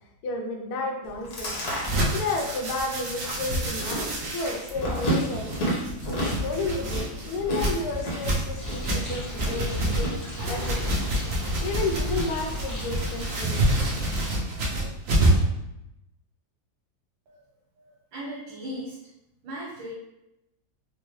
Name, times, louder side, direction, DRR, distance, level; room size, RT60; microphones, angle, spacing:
voice 1, 0.2-1.6 2.1-5.5 6.0-10.9 11.6-13.6 14.3-14.5 14.8-14.9, left 3 dB, 65° left, 1 dB, 1.0 m, -32 dB
Chewing mastication, 1.0-10.1, equal, 45° left, 0.9 m, -32 dB
sound 1, 1.8-15.5, right 1 dB, 55° right, 1.1 m, -28 dB
Bird, 8.6-14.4, left 1 dB, 15° left, 0.6 m, -37 dB
voice 2, 17.8-19.0 19.4-19.9, equal, 90° right, -5 dB, 1.6 m, -37 dB
4.6 x 2.2 x 3.1 m, 0.87 s
omnidirectional pair, 2.1 m